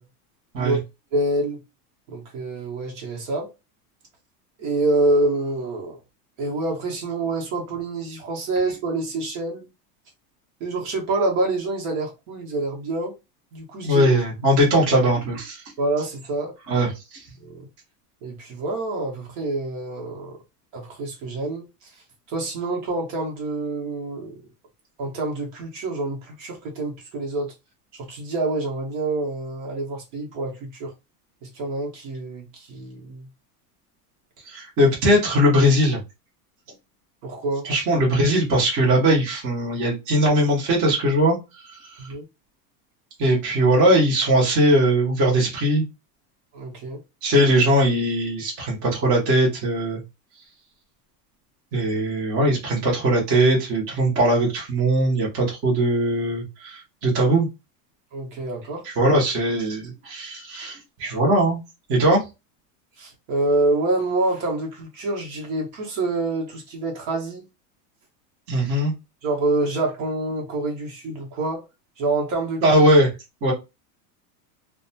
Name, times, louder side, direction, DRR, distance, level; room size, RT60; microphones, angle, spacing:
voice 1, 1.1-1.6 2.1-3.5 4.6-6.0 6.4-9.7 10.6-13.2 13.5-14.1 15.8-16.5 17.4-17.7 18.2-20.4 20.7-21.7 22.3-24.4 25.0-27.5 28.1-30.9 31.4-33.3 37.2-37.7 42.0-42.2 46.5-47.0 58.1-59.1 63.0-67.5 69.2-71.6 72.0-72.8, right 2 dB, 55° right, 1.1 m, -26 dB
voice 2, 13.8-15.6 16.7-17.2 34.5-36.0 37.6-41.4 41.7-41.8 43.2-45.8 47.2-50.0 51.7-57.5 59.0-61.6 61.9-62.2 68.5-68.9 72.6-73.1 73.4-73.5, right 1 dB, 30° right, 0.9 m, -20 dB
2.6 x 2.2 x 2.6 m
supercardioid pair, 165°, 48 cm